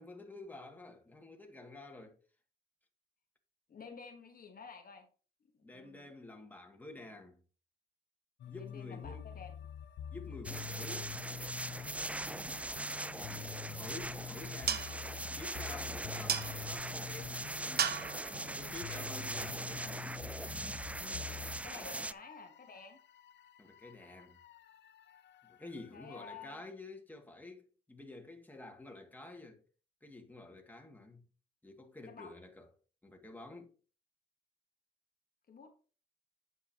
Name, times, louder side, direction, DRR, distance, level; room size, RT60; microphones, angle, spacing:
voice 1, 0.0-2.2 5.6-7.4 8.5-9.3 10.1-11.2 12.6-14.9 15.4-20.1 21.9-22.1 23.6-24.4 25.4-29.6 30.0-31.2 31.6-32.7 33.0-33.7, left 2 dB, 10° left, 2.3 m, -50 dB
voice 2, 3.7-5.1 5.6-6.1 8.5-9.6 10.3-10.4 21.0-23.0 25.9-26.6 32.1-32.4 35.5-35.7, left 5 dB, 45° left, 1.5 m, -51 dB
sound 1, 8.4-26.6, left 8 dB, 65° left, 0.8 m, -47 dB
sound 2, 10.4-22.1, right 2 dB, 5° right, 0.3 m, -41 dB
sound 3, 13.5-19.9, right 8 dB, 55° right, 0.9 m, -40 dB
9.7 x 7.8 x 3.0 m
cardioid pair, 90°, 20 cm